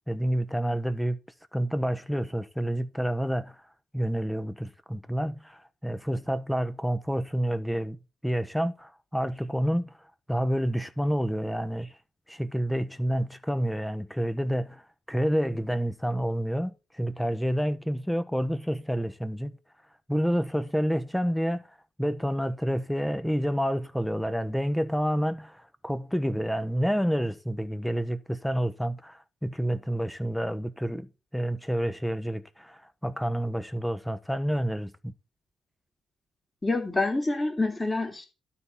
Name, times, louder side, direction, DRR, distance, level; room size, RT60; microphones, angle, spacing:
voice 1, 0.1-1.2 1.5-3.6 3.9-8.0 8.2-9.9 10.3-12.0 12.3-19.6 20.1-21.7 22.0-35.1, equal, ahead, 1.2 m, -29 dB
voice 2, 36.6-38.3, left 2 dB, 20° left, 3.1 m, -27 dB
12.0 x 4.1 x 7.2 m
hypercardioid pair, 45°, 0 cm